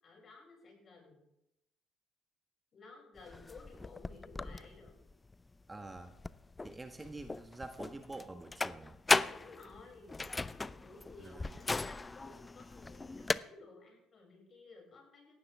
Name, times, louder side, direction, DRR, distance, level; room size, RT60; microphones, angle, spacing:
voice 1, 0.0-1.2 2.7-5.0 9.2-15.3, left 3 dB, 40° left, 0 dB, 7.6 m, -55 dB
sound 1, 3.2-13.4, left 3 dB, 20° left, 0.6 m, -37 dB
voice 2, 5.7-6.1 6.6-9.0 11.2-11.5, right 2 dB, 20° right, 6 dB, 1.5 m, -47 dB
18.0 x 16.0 x 3.7 m, 0.85 s
hypercardioid pair, 55°, 0 cm